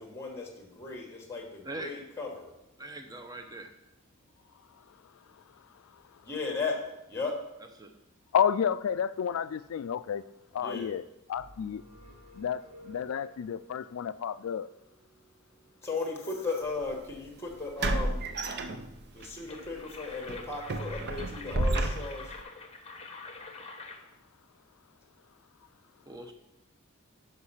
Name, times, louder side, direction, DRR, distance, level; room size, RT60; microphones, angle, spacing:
voice 1, 0.0-2.5 6.2-7.3 10.6-10.9 15.8-18.2 19.1-22.3, left 3 dB, 10° left, 2 dB, 1.2 m, -36 dB
voice 2, 1.6-2.0 2.8-3.7 7.8-7.9 26.1-26.3, right 1 dB, 20° right, 5 dB, 0.7 m, -41 dB
voice 3, 8.3-10.2 10.5-11.0 11.3-11.8 12.3-14.7, left 8 dB, 70° left, 16 dB, 0.3 m, -30 dB
sound 1, 11.3-13.7, equal, 80° right, 1.5 m, -53 dB
sound 2, 16.7-16.8 17.8-19.3 19.7-19.8 20.3-22.4, right 2 dB, 50° right, 0.6 m, -31 dB
sound 3, 19.2-24.2, left 3 dB, 30° left, 0.8 m, -45 dB
6.5 x 5.3 x 5.6 m, 0.93 s
head